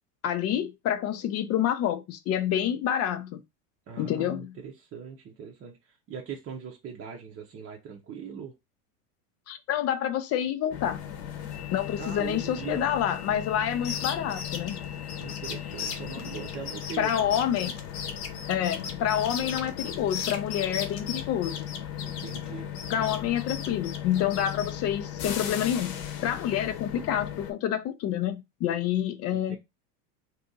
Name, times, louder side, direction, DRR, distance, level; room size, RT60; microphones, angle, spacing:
voice 1, 0.2-3.4 4.0-4.5 9.5-11.0 11.7-14.8 17.0-17.8 18.5-21.7 22.9-29.6, left 10 dB, 35° left, 0.4 m, -28 dB
voice 2, 3.9-8.5 12.0-12.8 15.2-17.1 17.5-17.6 22.0-22.9 29.3-29.6, right 6 dB, 30° right, 0.7 m, -41 dB
sound 1, 10.7-27.5, left 9 dB, 50° left, 0.9 m, -37 dB
sound 2, 13.7-22.5 22.7-24.7, left 7 dB, 85° left, 0.9 m, -37 dB
2.7 x 2.5 x 3.7 m
supercardioid pair, 105°, 46 cm